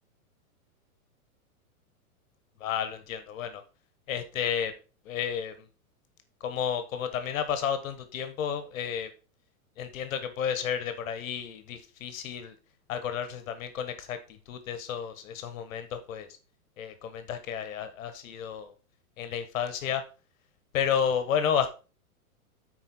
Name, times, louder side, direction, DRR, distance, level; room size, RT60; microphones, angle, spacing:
voice 1, 2.6-3.6 4.1-4.7 5.0-5.7 6.4-9.1 9.8-12.5 12.9-14.2 14.5-16.3 16.8-18.7 19.2-20.0 20.7-21.7, left 8 dB, 65° left, 10 dB, 1.6 m, -31 dB
9.0 x 4.7 x 4.4 m, 0.34 s
hypercardioid pair, 130°, 44 cm